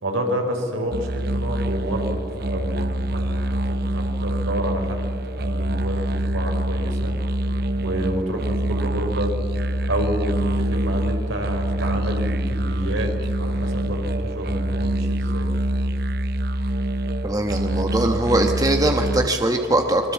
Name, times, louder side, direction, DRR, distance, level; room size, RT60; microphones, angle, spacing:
voice 1, 0.0-5.1 5.4-7.1 7.8-9.4 9.8-13.1 13.4-15.5, equal, 85° right, 3 dB, 4.4 m, -29 dB
sound 1, 0.9-19.3, right 1 dB, 50° right, 0.8 m, -25 dB
voice 2, 17.2-20.1, right 1 dB, 20° right, 4 dB, 1.2 m, -21 dB
25.0 x 22.0 x 7.4 m, 2.5 s
head